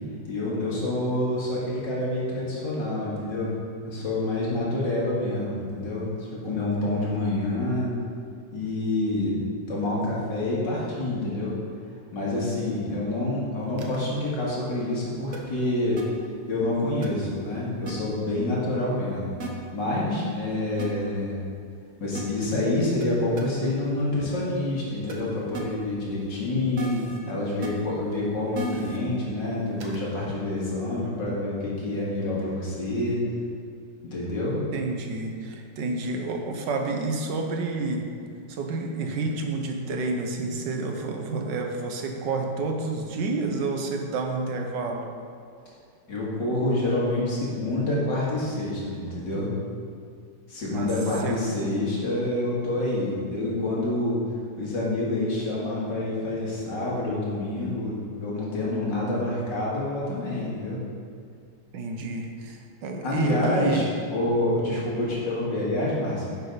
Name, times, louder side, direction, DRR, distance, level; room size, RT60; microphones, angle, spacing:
voice 1, 0.3-3.5 3.8-8.0 8.5-9.4 9.7-11.6 12.1-16.0 16.5-19.3 19.7-21.4 22.0-33.2 34.0-34.6 46.1-49.5 50.5-54.2 54.6-60.8 63.0-63.9 64.1-66.3, left 2 dB, 75° left, -6 dB, 2.7 m, -27 dB
sound 1, 13.8-14.0 15.3-15.4 16.0-16.1 17.0-17.1 17.9-18.0 19.4-19.5 20.8-20.9 22.1-22.2 23.0-23.1 23.4-23.5 25.1-25.2 25.5-25.6 26.8-27.2 27.6-27.7 28.5-29.0 29.8-30.0, right 2 dB, 50° right, 1.2 m, -33 dB
voice 2, 34.7-38.1 38.5-45.1 50.7-50.9 51.2-51.4 61.7-63.9, right 3 dB, 80° right, 3 dB, 1.6 m, -29 dB
10.5 x 6.7 x 4.0 m, 2.2 s
omnidirectional pair, 1.9 m